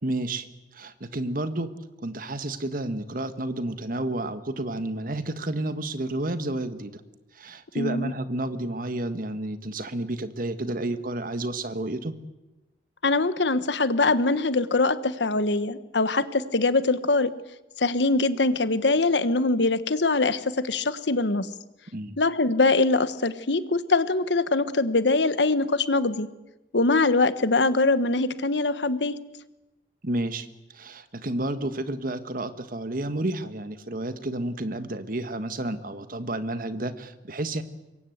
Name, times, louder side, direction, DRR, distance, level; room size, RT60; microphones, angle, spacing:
voice 1, 0.0-0.5 0.7-1.7 2.0-6.9 7.3-12.1 21.9-22.2 30.0-30.5 30.7-37.6, right 1 dB, 50° right, 11 dB, 1.5 m, -31 dB
voice 2, 7.7-8.1 13.0-17.3 17.8-21.5 22.2-26.3 26.7-29.2, left 3 dB, 80° left, 13 dB, 1.2 m, -23 dB
25.5 x 22.0 x 8.1 m, 1.0 s
head